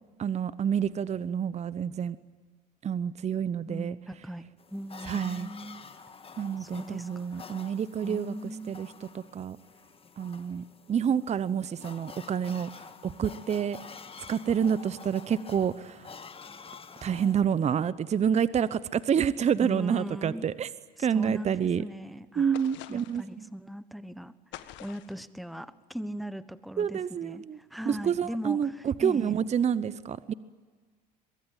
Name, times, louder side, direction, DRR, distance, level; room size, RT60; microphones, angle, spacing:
voice 1, 0.2-2.2 2.8-4.0 5.1-5.5 6.4-8.9 9.1-9.6 10.2-13.8 14.3-16.1 17.0-20.7 21.0-21.8 22.4-23.4 26.8-27.6 27.9-30.3, right 8 dB, 30° right, 17 dB, 0.9 m, -28 dB
voice 2, 3.7-5.8 6.6-7.5 8.0-8.8 19.6-20.5 21.0-22.6 22.9-29.3, equal, ahead, 15 dB, 1.2 m, -39 dB
sound 1, 4.6-17.4, left 5 dB, 25° left, 1.8 m, -48 dB
sound 2, 22.5-23.3 24.5-25.2, left 14 dB, 60° left, 1.5 m, -46 dB
23.5 x 22.5 x 9.1 m, 1.5 s
hypercardioid pair, 70°, 21 cm